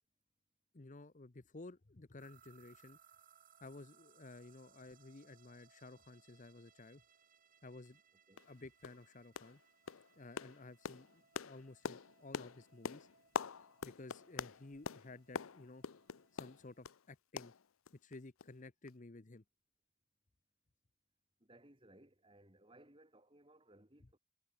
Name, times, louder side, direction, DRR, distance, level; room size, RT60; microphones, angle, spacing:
voice 1, 0.7-3.0 3.6-7.0 7.6-8.0 8.5-9.6 10.2-13.1 13.8-15.8 16.3-17.5 18.0-19.4, left 2 dB, 35° left, 0.8 m, -54 dB
sound 1, 2.2-16.8, right 7 dB, 40° right, 1.9 m, -69 dB
sound 2, 7.9-8.0 8.4-8.5 8.8-9.1 9.4-9.6 9.9-17.0 17.4-18.1 18.4-18.5 18.9-19.0, left 6 dB, 70° left, 0.6 m, -45 dB
voice 2, 21.4-24.2, right 1 dB, 25° right, 3.1 m, -63 dB
head